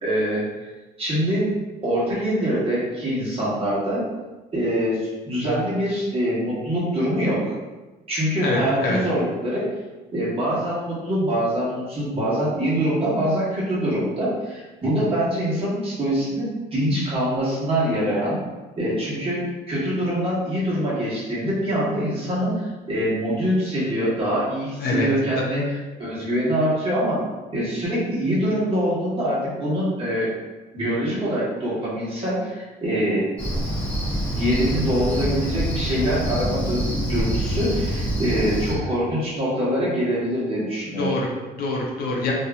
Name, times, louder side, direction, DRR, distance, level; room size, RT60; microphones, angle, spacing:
voice 1, 0.0-0.7 1.0-1.6 1.8-4.0 4.5-7.5 8.1-9.7 10.1-18.4 18.8-25.6 26.0-27.2 27.5-30.3 30.7-33.3 34.3-41.1, equal, 35° right, -7 dB, 1.2 m, -24 dB
voice 2, 8.4-9.0 24.8-25.1 25.4-25.5 40.8-42.3, left 2 dB, 65° left, -2 dB, 0.6 m, -25 dB
Cricket, 33.4-38.7, equal, 10° left, 0.9 m, -26 dB
2.8 x 2.6 x 2.3 m, 1.2 s
cardioid pair, 110°, 17 cm